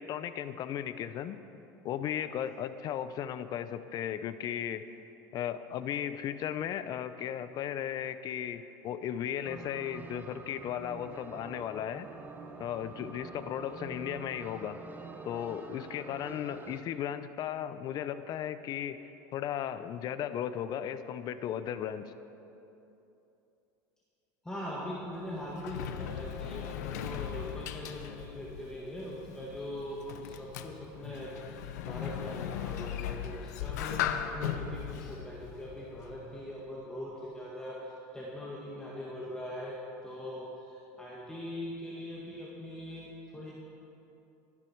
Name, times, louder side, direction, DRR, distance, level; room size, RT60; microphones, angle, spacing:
voice 1, 0.0-1.4 1.8-4.8 5.3-12.1 12.6-14.8 15.3-19.0 19.3-22.1, left 10 dB, 50° left, 12 dB, 0.7 m, -36 dB
sound 1, 9.4-16.8, right 3 dB, 20° right, 1.1 m, -46 dB
voice 2, 24.4-39.8 40.0-43.5, left 1 dB, 10° left, -5 dB, 2.2 m, -41 dB
Sliding door, 25.1-36.5, left 10 dB, 85° left, 0.8 m, -38 dB
22.0 x 9.7 x 4.6 m, 2.9 s
supercardioid pair, 105°, 9 cm